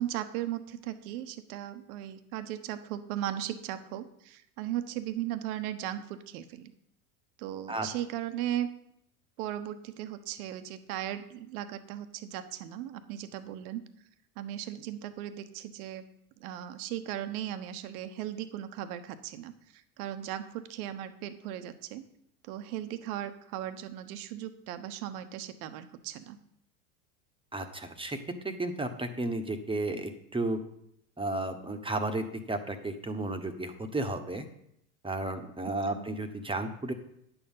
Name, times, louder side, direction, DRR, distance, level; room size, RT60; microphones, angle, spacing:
voice 1, 0.0-6.7 7.4-8.7 9.4-13.8 14.4-16.1 16.4-22.0 22.4-26.4 35.9-36.0, right 12 dB, 65° right, 10 dB, 1.1 m, -37 dB
voice 2, 27.5-28.2 28.4-30.6 31.2-34.4 35.0-36.9, right 2 dB, 10° right, 7 dB, 1.3 m, -33 dB
10.0 x 7.1 x 5.7 m, 0.73 s
hypercardioid pair, 90°, 46 cm